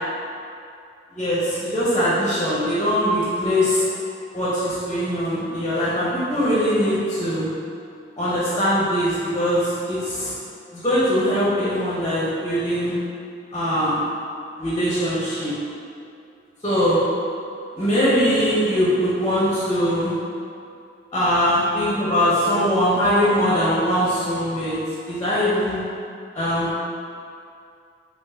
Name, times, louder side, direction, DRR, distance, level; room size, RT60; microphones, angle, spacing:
voice 1, 1.1-3.9 4.3-7.5 8.2-10.3 10.7-13.0 13.5-14.0 14.6-15.5 16.6-17.0 17.8-20.1 21.1-24.8 25.1-25.8 26.3-26.8, equal, 25° left, -9 dB, 1.0 m, -21 dB
5.3 x 2.7 x 3.7 m, 2.5 s
head